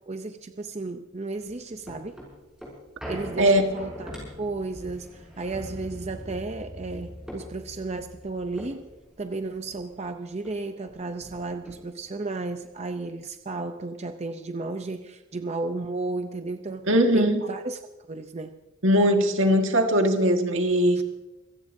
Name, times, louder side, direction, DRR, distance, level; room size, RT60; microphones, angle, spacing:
voice 1, 0.1-2.2 3.1-8.9 9.2-18.6 20.9-21.0, right 3 dB, 30° right, 7 dB, 0.6 m, -34 dB
sound 1, 1.4-10.1 10.4-10.5 10.8-12.2 12.7-12.8, equal, 5° right, 6.4 m, -42 dB
voice 2, 16.9-17.5 18.8-21.0, equal, 75° right, 4 dB, 1.7 m, -20 dB
25.5 x 16.5 x 2.7 m, 1.0 s
head